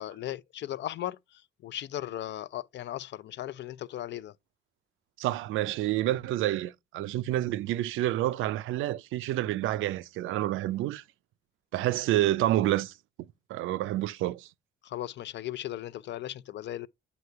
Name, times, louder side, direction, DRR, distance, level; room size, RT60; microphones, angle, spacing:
voice 1, 0.0-4.3 14.8-16.9, left 13 dB, 65° left, 0.5 m, -37 dB
voice 2, 5.2-11.0 11.7-12.9 13.5-14.5, right 14 dB, 85° right, 0.4 m, -28 dB
7.9 x 2.8 x 4.6 m
cardioid pair, 90°, 20 cm